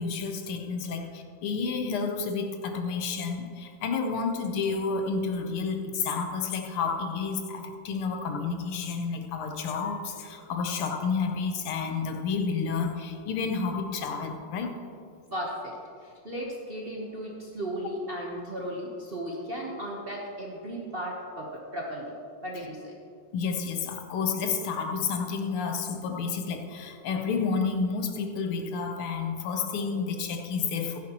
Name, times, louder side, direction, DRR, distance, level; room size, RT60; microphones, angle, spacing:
voice 1, 0.0-14.7 23.3-31.0, left 5 dB, 80° left, 5 dB, 1.8 m, -30 dB
voice 2, 15.3-15.7 16.0-22.1 22.4-22.9, equal, 35° right, -3 dB, 1.0 m, -35 dB
13.5 x 10.5 x 3.0 m, 2.3 s
omnidirectional pair, 2.4 m